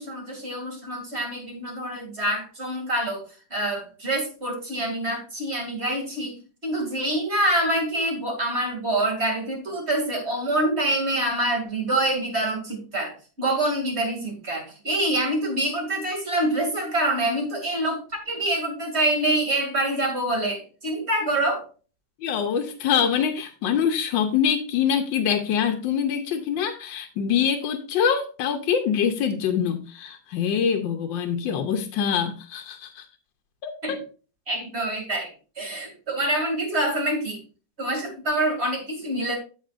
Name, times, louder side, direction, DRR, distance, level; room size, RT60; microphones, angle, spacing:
voice 1, 0.0-3.2 3.5-21.6 33.8-34.0 34.5-37.4 37.8-39.4, right 1 dB, 35° right, 2 dB, 2.7 m, -26 dB
voice 2, 22.2-33.1 33.6-34.0, left 7 dB, 85° left, 6 dB, 1.4 m, -24 dB
13.5 x 5.0 x 2.5 m, 0.37 s
omnidirectional pair, 2.0 m